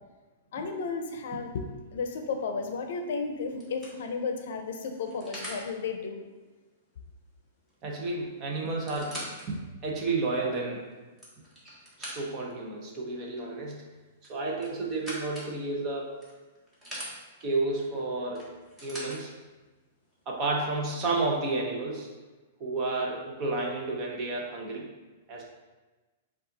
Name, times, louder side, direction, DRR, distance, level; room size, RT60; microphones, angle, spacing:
voice 1, 0.5-6.3, left 4 dB, 65° left, 5 dB, 0.6 m, -33 dB
sound 1, 2.7-3.0 3.6-5.7 7.7-7.8 8.0-8.1 8.7-9.5 10.1-10.2 10.9-12.5 14.2-15.5 16.2-17.1 18.3-19.2 20.1-20.2, equal, 10° right, 1.1 m, -42 dB
voice 2, 7.8-9.2 9.5-10.9 12.0-13.8 14.3-16.2 17.4-18.5 18.8-19.3 20.3-22.1 22.6-24.9 25.3-25.4, right 3 dB, 30° right, -1 dB, 0.8 m, -31 dB
5.4 x 2.4 x 4.0 m, 1.2 s
hypercardioid pair, 160°, 0 cm